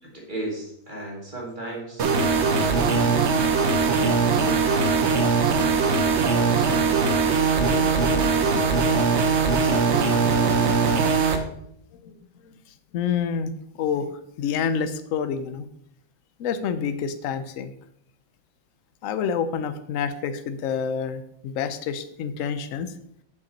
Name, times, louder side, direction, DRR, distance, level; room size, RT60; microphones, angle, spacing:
voice 1, 0.0-8.7 9.5-10.8, right 1 dB, 35° right, -3 dB, 2.3 m, -36 dB
sound 1, 2.0-11.4, right 4 dB, 55° right, 1.0 m, -21 dB
voice 2, 12.9-13.5 13.8-14.1 14.4-15.7 16.4-17.7 19.0-22.9, left 7 dB, 70° left, 11 dB, 1.0 m, -28 dB
6.8 x 5.6 x 4.1 m, 0.74 s
omnidirectional pair, 1.5 m